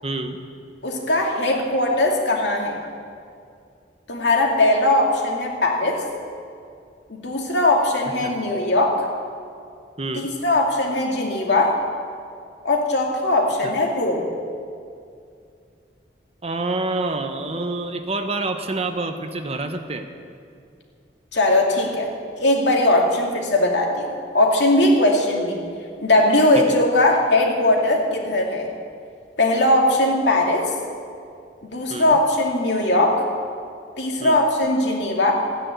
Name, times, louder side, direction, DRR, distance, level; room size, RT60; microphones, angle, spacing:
voice 1, 0.0-0.4 8.2-8.3 10.0-10.3 13.6-13.7 16.4-20.1 26.5-26.8 31.9-32.2 34.2-34.4, right 2 dB, 35° right, 7 dB, 1.0 m, -27 dB
voice 2, 0.8-2.8 4.1-6.0 7.1-9.1 10.1-11.8 12.6-14.3 21.3-22.1 22.4-25.6 26.0-28.7 29.4-30.7 31.6-33.2 34.0-35.3, left 1 dB, 90° left, 0 dB, 2.4 m, -19 dB
14.5 x 9.7 x 8.1 m, 2.4 s
head